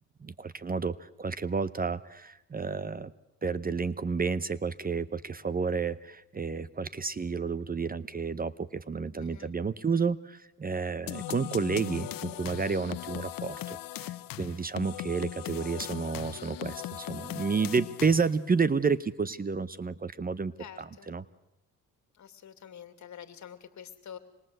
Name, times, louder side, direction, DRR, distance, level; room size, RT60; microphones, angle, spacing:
voice 1, 0.2-3.1 3.4-21.2, right 5 dB, 25° right, 16 dB, 0.9 m, -31 dB
voice 2, 9.2-9.5 20.6-21.1 22.1-24.2, left 8 dB, 55° left, 10 dB, 2.6 m, -47 dB
sound 1, 11.1-18.5, left 14 dB, 75° left, 0.9 m, -39 dB
26.5 x 21.5 x 7.9 m, 0.88 s
cardioid pair, 90°, 34 cm